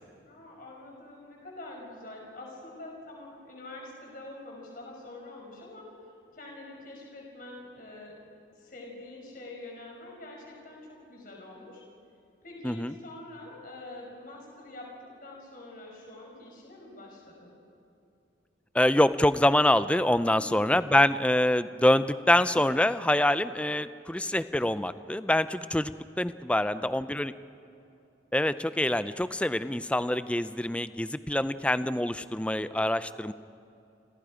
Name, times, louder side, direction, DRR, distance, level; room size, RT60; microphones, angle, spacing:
voice 1, 0.2-5.9 6.3-8.2 8.5-11.8 12.4-14.9 15.2-17.5 20.2-20.8 26.6-27.3, left 2 dB, 45° left, -1 dB, 5.0 m, -46 dB
voice 2, 18.7-25.9 26.2-27.3 28.3-33.3, left 1 dB, 5° left, 13 dB, 0.5 m, -25 dB
30.0 x 26.0 x 5.0 m, 2.7 s
head